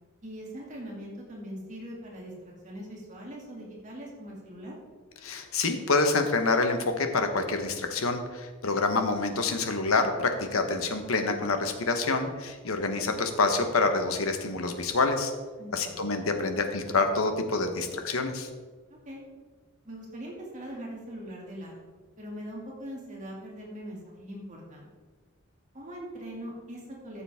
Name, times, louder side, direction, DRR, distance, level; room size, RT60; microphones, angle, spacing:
voice 1, 0.2-4.7 15.6-16.0 19.1-19.2 19.8-21.8 22.2-24.9 25.7-27.2, equal, 35° right, -3 dB, 2.4 m, -41 dB
voice 2, 5.2-15.3 15.7-18.5, left 3 dB, 75° left, 6 dB, 1.1 m, -27 dB
13.5 x 7.1 x 3.6 m, 1.4 s
head